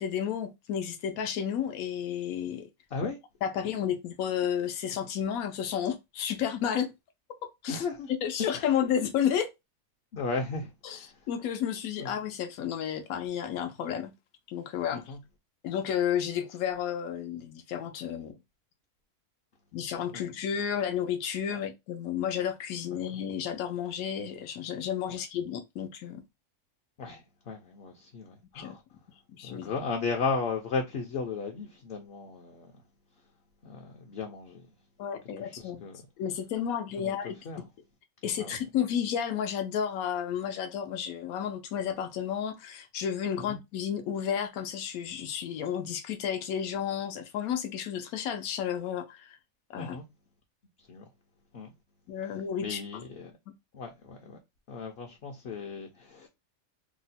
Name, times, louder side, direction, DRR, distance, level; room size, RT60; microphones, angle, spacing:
voice 1, 0.0-2.7 3.0-3.1 3.4-6.9 7.6-7.8 8.2-9.5 10.8-11.0 11.3-14.1 14.5-15.1 15.6-18.3 19.7-26.2 28.5-28.8 29.3-29.7 35.0-35.8 36.2-37.4 38.2-49.4 49.7-50.0 52.1-52.8, left 8 dB, 90° left, 1.0 m, -32 dB
voice 2, 7.7-8.1 8.4-8.7 10.1-11.1 12.0-12.1 14.9-15.2 20.1-20.2 21.5-21.6 25.1-25.2 27.0-28.8 29.4-32.7 33.6-34.7 35.4-36.0 37.0-37.6 38.4-38.6 43.3-43.6 49.8-50.1 50.9-51.1 51.5-51.7 52.6-53.4 53.7-54.4 54.7-56.3, left 4 dB, 60° left, 0.7 m, -35 dB
2.9 x 2.1 x 4.0 m
omnidirectional pair, 1.5 m